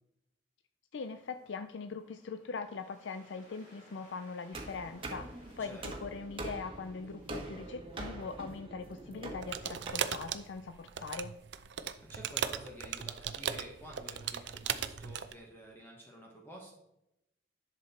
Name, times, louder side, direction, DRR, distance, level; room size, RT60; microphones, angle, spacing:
voice 1, 0.9-11.3, left 4 dB, 90° left, 9 dB, 0.5 m, -41 dB
Waves surf, 0.9-8.7, left 1 dB, 45° left, 2.9 m, -63 dB
sound 1, 4.5-9.9, right 2 dB, 30° right, 1.4 m, -44 dB
voice 2, 5.6-6.1 12.1-16.7, equal, 10° left, -1 dB, 1.1 m, -50 dB
sound 2, 9.4-15.3, right 8 dB, 75° right, 0.6 m, -37 dB
10.5 x 6.0 x 4.2 m, 0.87 s
head